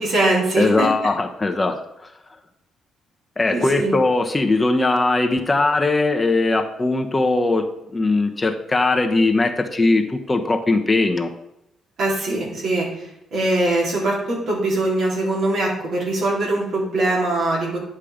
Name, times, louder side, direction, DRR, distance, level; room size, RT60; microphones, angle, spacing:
voice 1, 0.0-0.9 3.5-3.9 12.0-12.9 13.3-17.8, right 2 dB, 65° right, -4 dB, 4.1 m, -22 dB
voice 2, 0.6-2.1 3.4-11.3, left 2 dB, 20° left, 5 dB, 1.0 m, -20 dB
10.0 x 5.6 x 5.1 m, 0.85 s
cardioid pair, 90°, 0 cm